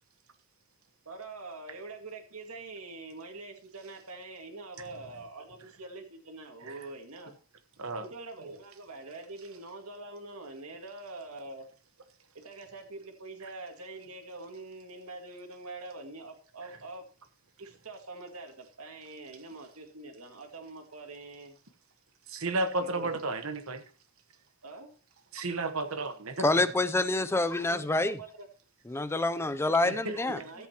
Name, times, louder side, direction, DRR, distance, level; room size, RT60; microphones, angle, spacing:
voice 1, 1.1-7.3 8.0-11.6 12.3-17.0 17.6-21.6 22.8-23.2 24.6-24.9 27.6-28.5 30.2-30.7, right 2 dB, 90° right, 2.1 m, -44 dB
voice 2, 22.3-23.8 25.3-26.6 29.8-30.2, right 2 dB, 70° right, 1.2 m, -33 dB
voice 3, 26.4-28.2 28.9-30.4, left 2 dB, 10° left, 0.4 m, -27 dB
13.5 x 8.2 x 2.9 m
head